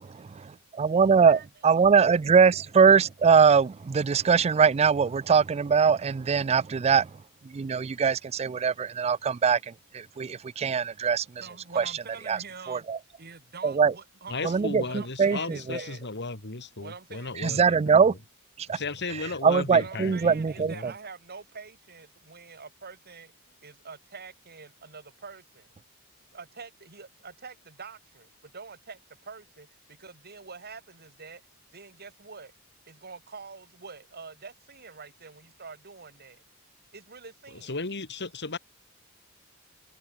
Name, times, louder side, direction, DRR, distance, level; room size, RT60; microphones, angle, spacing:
voice 1, 0.0-11.5 11.8-13.0 13.6-13.9 14.4-15.8 17.4-18.2 18.6-18.8 19.1-20.9, right 6 dB, 30° right, 0.3 m, -23 dB
voice 2, 11.4-12.9 13.2-16.0 16.6-17.3 18.6-18.7 19.7-25.7 26.3-31.4 31.7-32.5 32.9-36.4 36.9-37.8, right 5 dB, 50° right, 3.0 m, -46 dB
voice 3, 14.3-17.8 18.7-20.8 37.7-38.6, left 3 dB, 55° left, 2.9 m, -35 dB
head